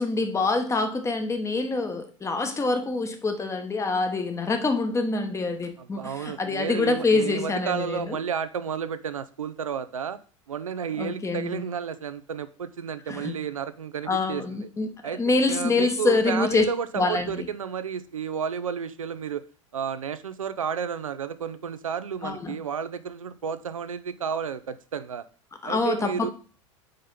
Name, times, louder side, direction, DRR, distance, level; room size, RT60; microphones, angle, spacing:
voice 1, 0.0-8.2 11.0-11.6 13.1-13.3 14.1-16.7 17.0-17.4 22.2-22.6 25.6-26.3, left 3 dB, 15° left, 7 dB, 1.1 m, -26 dB
voice 2, 5.8-10.2 10.5-14.7 15.0-15.2 15.5-19.4 19.7-25.2 25.6-26.3, right 7 dB, 85° right, 13 dB, 0.5 m, -32 dB
5.1 x 4.3 x 5.3 m, 0.40 s
hypercardioid pair, 85°, 17 cm